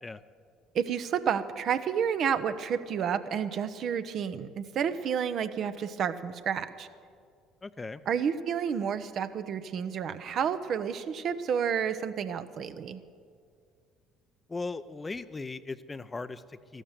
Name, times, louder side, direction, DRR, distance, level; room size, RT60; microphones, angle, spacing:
voice 1, 0.7-6.9 8.1-13.0, right 7 dB, 55° right, 11 dB, 0.8 m, -30 dB
voice 2, 7.6-8.0 14.5-16.8, left 3 dB, 25° left, 13 dB, 0.6 m, -38 dB
14.5 x 12.5 x 6.7 m, 2.2 s
hypercardioid pair, 60°, 0 cm